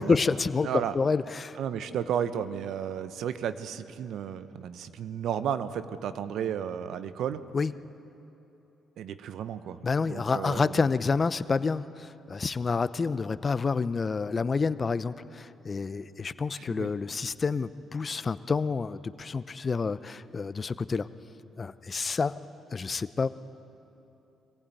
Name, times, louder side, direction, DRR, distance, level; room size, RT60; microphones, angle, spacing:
voice 1, 0.0-1.6 7.5-7.7 9.8-21.1 21.6-22.3 22.7-23.3, left 4 dB, 40° left, 14 dB, 0.7 m, -28 dB
voice 2, 0.6-0.9 1.6-7.4 9.0-10.8 16.5-16.9, right 9 dB, 75° right, 12 dB, 0.9 m, -33 dB
23.0 x 15.5 x 9.1 m, 3.0 s
supercardioid pair, 65°, 0 cm